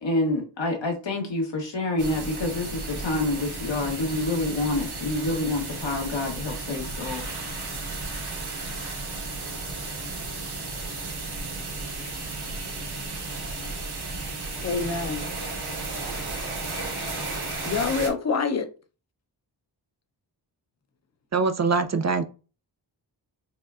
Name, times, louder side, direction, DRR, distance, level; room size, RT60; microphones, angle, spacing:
voice 1, 0.0-7.3, left 2 dB, 75° left, 1.3 m, -27 dB
sound 1, 2.0-18.1, right 3 dB, 60° right, 1.4 m, -34 dB
voice 2, 14.6-15.3 17.6-18.7, left 4 dB, 35° left, 0.7 m, -26 dB
voice 3, 21.3-22.2, right 4 dB, 40° right, 0.4 m, -23 dB
5.5 x 2.2 x 2.4 m
cardioid pair, 60°, 45 cm